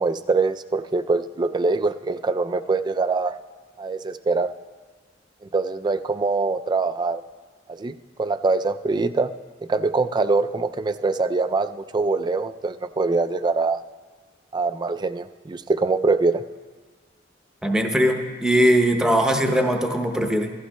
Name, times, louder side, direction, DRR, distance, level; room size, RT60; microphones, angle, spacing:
voice 1, 0.0-3.4 3.8-4.5 5.4-7.2 7.7-9.3 9.7-13.8 14.5-16.4, right 3 dB, 25° right, 11 dB, 0.3 m, -23 dB
voice 2, 17.6-20.5, equal, 5° right, 4 dB, 0.7 m, -20 dB
16.0 x 14.5 x 2.2 m, 1.5 s
head